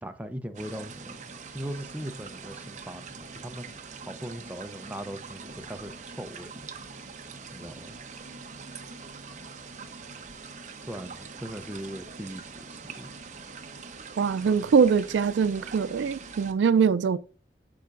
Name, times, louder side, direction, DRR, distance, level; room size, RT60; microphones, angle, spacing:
voice 1, 0.0-1.2 1.5-3.7 4.0-6.5 7.5-8.0 10.9-13.1 14.4-14.7, equal, 10° right, 0.5 m, -39 dB
sound 1, 0.5-16.5, right 4 dB, 45° right, 0.8 m, -43 dB
voice 2, 14.2-17.2, right 6 dB, 90° right, 0.4 m, -23 dB
8.5 x 6.6 x 2.5 m
head